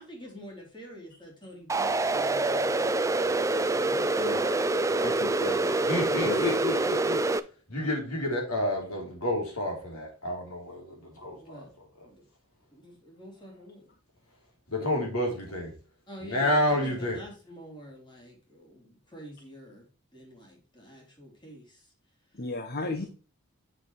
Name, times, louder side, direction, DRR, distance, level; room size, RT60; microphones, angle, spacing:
voice 1, 0.0-2.9 3.7-4.3 5.4-5.6 5.9-6.7 11.3-11.7 12.0-12.2 12.7-13.8 16.1-19.9 20.1-21.9 22.8-23.1, equal, 20° left, 3.5 m, -47 dB
sound 1, 1.7-7.4, right 2 dB, 15° right, 0.4 m, -26 dB
voice 2, 4.2-4.6 5.0-5.9 6.2-6.5 22.3-23.1, left 3 dB, 45° left, 1.0 m, -35 dB
voice 3, 5.8-7.2 7.7-11.7 12.0-12.1 14.7-15.7 16.2-17.2, left 1 dB, 75° left, 3.8 m, -30 dB
7.8 x 6.6 x 3.3 m
head